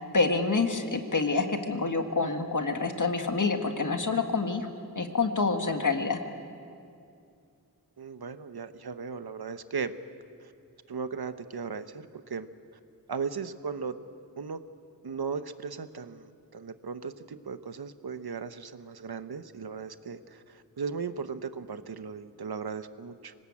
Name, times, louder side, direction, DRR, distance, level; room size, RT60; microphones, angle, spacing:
voice 1, 0.1-4.6 5.0-6.2, left 4 dB, 55° left, 5 dB, 1.9 m, -27 dB
voice 2, 8.0-9.9 10.4-10.5 10.9-12.5 13.1-13.9 14.4-14.6 15.0-23.3, right 5 dB, 80° right, 11 dB, 1.0 m, -37 dB
25.0 x 19.0 x 8.6 m, 2.4 s
wide cardioid pair, 75°, 37 cm